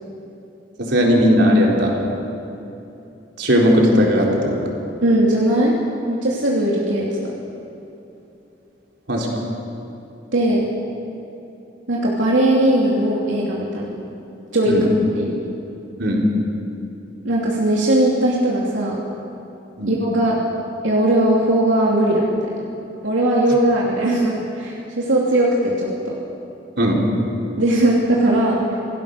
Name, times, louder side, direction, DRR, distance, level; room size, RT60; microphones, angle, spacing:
voice 1, 0.8-2.0 3.4-4.6 9.1-9.3 14.7-14.8 16.0-16.2 19.8-19.9 26.8-27.0, equal, 65° right, -2 dB, 4.1 m, -17 dB
voice 2, 5.0-5.8 6.1-7.3 10.3-10.7 11.9-13.9 14.5-14.8 15.1-15.4 17.2-19.0 19.9-20.4 20.8-22.6 23.0-26.1 27.6-28.8, right 1 dB, 85° right, -4 dB, 2.9 m, -19 dB
27.5 x 17.5 x 6.8 m, 2.9 s
head